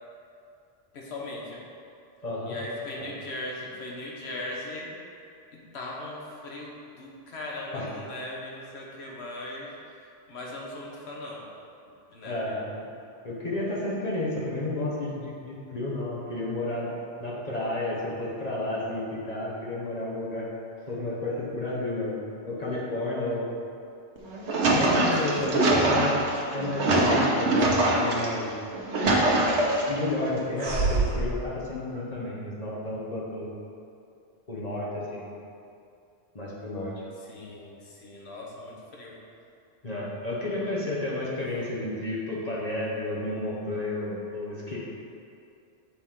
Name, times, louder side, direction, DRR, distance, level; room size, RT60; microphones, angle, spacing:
voice 1, 0.9-1.6 2.4-4.9 5.5-11.5 11.8-12.6 25.2-26.1 37.2-39.2, left 1 dB, 70° left, -3 dB, 1.2 m, -39 dB
voice 2, 2.2-2.6 7.7-7.9 12.2-12.9 13.2-16.9 17.2-20.5 20.9-22.1 22.4-23.5 24.6-26.2 26.5-28.5 29.9-33.5 34.5-35.3 36.3-36.9 39.8-44.8, left 2 dB, 40° left, -6 dB, 1.1 m, -31 dB
sound 1, 24.2-28.3 28.7-30.0 30.6-31.3, right 2 dB, 85° right, 1.2 m, -23 dB
7.0 x 4.1 x 3.7 m, 2.6 s
omnidirectional pair, 1.1 m